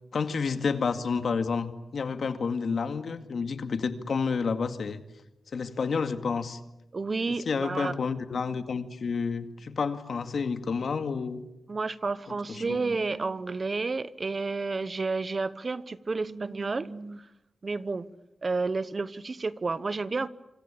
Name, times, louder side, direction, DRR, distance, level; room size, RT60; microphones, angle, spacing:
voice 1, 0.1-5.0 5.5-6.6 7.3-11.4 12.3-12.8, left 5 dB, 60° left, 9 dB, 2.1 m, -30 dB
voice 2, 6.9-7.9 11.7-17.3 17.6-18.1 18.4-20.3, right 3 dB, 35° right, 16 dB, 1.0 m, -31 dB
26.0 x 26.0 x 8.6 m, 0.89 s
wide cardioid pair, 115°, 0 cm